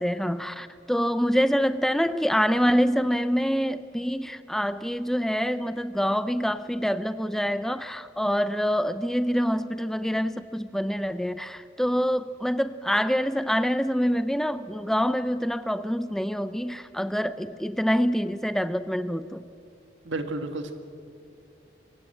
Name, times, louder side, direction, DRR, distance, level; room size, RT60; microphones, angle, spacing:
voice 1, 0.0-19.5, equal, ahead, 13 dB, 0.5 m, -26 dB
voice 2, 20.0-20.7, right 2 dB, 85° right, 7 dB, 1.8 m, -31 dB
25.0 x 16.0 x 7.9 m, 2.5 s
head